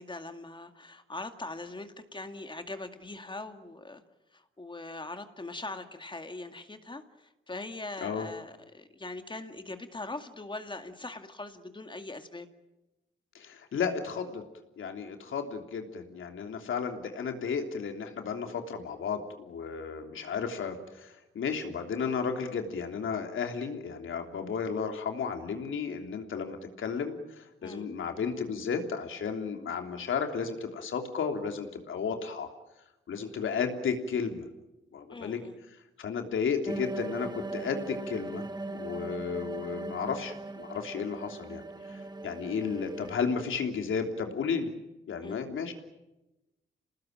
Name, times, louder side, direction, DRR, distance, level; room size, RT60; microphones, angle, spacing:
voice 1, 0.0-4.0 4.3-12.5 27.6-27.9 35.1-35.6 45.2-45.4, left 2 dB, 25° left, 7 dB, 2.2 m, -41 dB
voice 2, 13.3-14.4 14.8-32.5 33.1-34.5 34.9-35.4 36.0-38.4 38.7-41.6 41.9-42.0 42.2-44.7 45.1-45.7, left 6 dB, 80° left, 5 dB, 3.3 m, -33 dB
sound 1, 36.7-43.2, right 2 dB, 20° right, 1.7 m, -39 dB
28.0 x 19.5 x 9.1 m, 1.0 s
cardioid pair, 85°, 20 cm